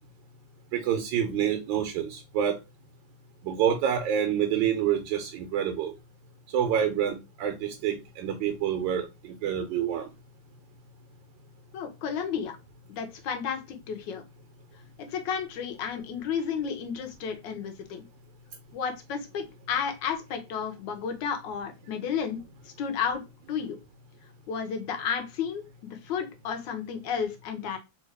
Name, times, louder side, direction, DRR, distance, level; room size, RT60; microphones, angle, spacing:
voice 1, 0.7-2.6 3.4-5.9 6.5-10.1, right 9 dB, 90° right, 5 dB, 1.3 m, -27 dB
voice 2, 11.7-12.6 12.9-14.2 15.0-18.0 18.7-22.4 22.8-23.2 23.5-23.8 24.5-25.6 26.0-27.8, left 7 dB, 80° left, 6 dB, 1.4 m, -32 dB
3.5 x 2.3 x 3.2 m, 0.25 s
omnidirectional pair, 2.0 m